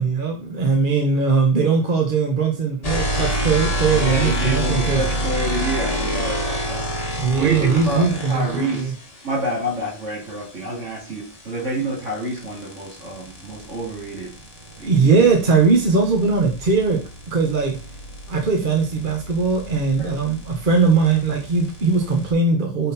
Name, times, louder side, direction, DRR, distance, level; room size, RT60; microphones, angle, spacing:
voice 1, 0.0-5.0 7.2-8.9 14.9-17.0 17.3-17.8 18.3-22.9, right 4 dB, 45° right, 1 dB, 1.2 m, -20 dB
sound 1, 2.8-8.8 11.3-22.3, right 1 dB, 35° left, 1.2 m, -28 dB
voice 2, 3.9-6.9 7.3-8.9 9.2-14.3 14.8-15.3 20.0-20.2, right 1 dB, 75° right, -3 dB, 3.3 m, -28 dB
6.2 x 3.7 x 4.2 m, 0.34 s
omnidirectional pair, 1.3 m